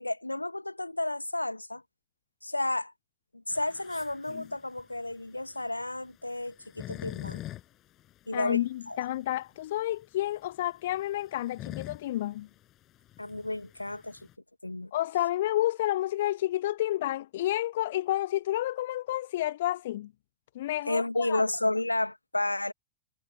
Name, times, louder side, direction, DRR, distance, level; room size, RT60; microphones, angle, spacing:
voice 1, 0.0-1.8 2.4-2.9 3.5-7.4 8.3-8.6 8.9-9.0 13.2-14.2 14.6-14.9 20.9-22.7, left 2 dB, 85° left, 1.9 m, -31 dB
sound 1, 3.5-14.3, left 14 dB, 35° left, 5.3 m, -45 dB
voice 2, 8.3-12.5 14.9-20.1 20.5-21.4, left 14 dB, 55° left, 0.5 m, -30 dB
figure-of-eight pair, 90°, 0 cm